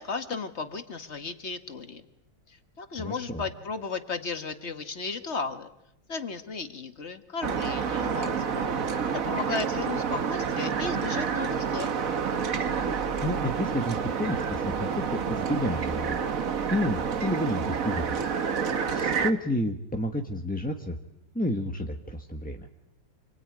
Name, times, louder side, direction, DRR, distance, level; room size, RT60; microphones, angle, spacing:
voice 1, 0.0-2.0 2.5-5.7 6.1-8.7 9.1-12.0, left 4 dB, 40° left, 9 dB, 1.6 m, -35 dB
voice 2, 3.0-3.4 13.2-16.3 16.7-18.2 18.6-21.0 21.3-22.7, left 1 dB, 5° left, 3 dB, 1.0 m, -30 dB
sound 1, 7.4-19.3, right 6 dB, 50° right, 1.5 m, -29 dB
28.0 x 21.5 x 9.4 m, 0.84 s
omnidirectional pair, 2.1 m